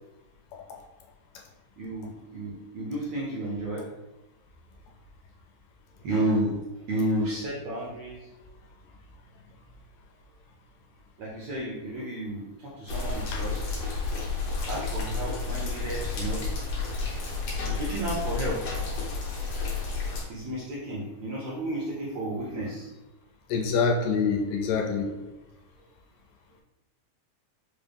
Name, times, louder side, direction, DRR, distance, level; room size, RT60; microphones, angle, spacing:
voice 1, 1.8-3.8 6.0-6.5 6.9-8.3 11.2-13.7 14.6-16.4 17.8-18.6 20.3-22.9, right 1 dB, 75° right, -6 dB, 1.6 m, -32 dB
sound 1, 12.9-20.2, left 4 dB, 65° left, 1.7 m, -31 dB
voice 2, 23.5-25.3, left 5 dB, 80° left, 0 dB, 2.0 m, -26 dB
5.3 x 2.1 x 3.4 m, 1.0 s
omnidirectional pair, 3.7 m